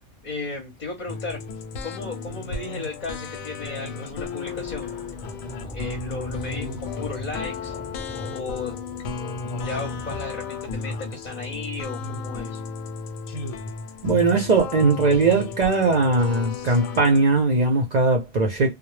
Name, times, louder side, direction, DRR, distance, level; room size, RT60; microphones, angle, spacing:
voice 1, 0.2-1.4 1.8-4.9 5.7-7.8 8.3-8.7 9.5-12.6, left 3 dB, 45° left, 0.6 m, -34 dB
sound 1, 1.1-17.2, left 4 dB, 85° left, 1.0 m, -34 dB
sound 2, 4.4-11.8, left 1 dB, 10° left, 0.6 m, -40 dB
voice 2, 14.0-18.8, right 3 dB, 55° right, 0.5 m, -20 dB
2.1 x 2.0 x 3.0 m
omnidirectional pair, 1.3 m